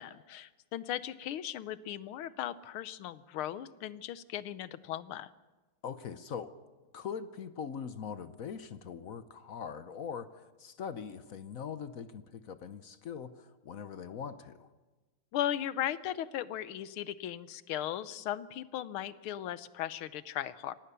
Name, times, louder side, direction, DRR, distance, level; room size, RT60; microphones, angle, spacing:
voice 1, 0.0-5.3 15.3-20.8, left 11 dB, 80° left, 15 dB, 1.7 m, -37 dB
voice 2, 5.8-6.5 6.9-14.7, left 7 dB, 55° left, 12 dB, 0.9 m, -42 dB
25.5 x 18.0 x 6.9 m, 1.2 s
omnidirectional pair, 2.4 m